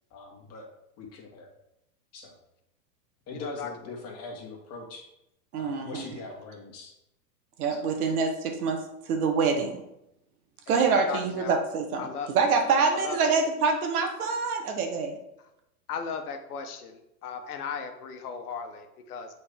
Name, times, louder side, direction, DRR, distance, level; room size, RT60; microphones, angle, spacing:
voice 1, 0.1-0.7 1.0-1.5 2.1-2.4 3.3-5.0 5.6-6.9 7.7-7.9, left 3 dB, 35° left, 0 dB, 1.6 m, -42 dB
voice 2, 3.3-3.7 10.7-11.6 12.0-12.3 12.9-13.3 15.9-19.3, left 6 dB, 80° left, 5 dB, 1.0 m, -37 dB
voice 3, 5.5-6.1 7.6-8.8 9.1-9.8 10.7-15.2, right 4 dB, 75° right, 4 dB, 1.3 m, -26 dB
6.9 x 4.1 x 3.5 m, 0.84 s
supercardioid pair, 130°, 44 cm